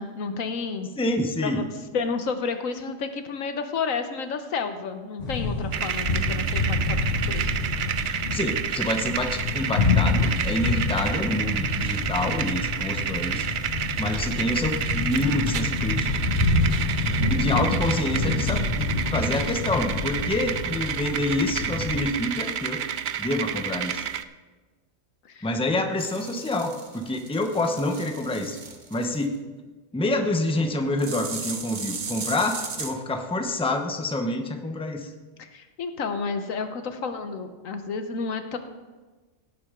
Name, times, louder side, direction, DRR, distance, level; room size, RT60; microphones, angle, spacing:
voice 1, 0.0-0.9 1.4-1.6 1.9-7.0 7.3-7.5 25.3-25.5 35.4-38.6, left 5 dB, 85° left, 8 dB, 1.4 m, -31 dB
voice 2, 1.0-1.6 8.3-13.5 14.0-16.1 17.3-22.8 23.2-24.0 25.4-28.6 28.9-29.3 29.9-35.1, left 2 dB, 5° left, 5 dB, 0.8 m, -27 dB
sound 1, 5.2-22.0, left 3 dB, 65° left, 1.9 m, -27 dB
sound 2, 5.7-24.2, right 9 dB, 65° right, 0.5 m, -30 dB
sound 3, 26.0-29.3 31.0-32.9, right 5 dB, 40° right, 0.9 m, -37 dB
17.0 x 8.4 x 3.8 m, 1.3 s
omnidirectional pair, 1.4 m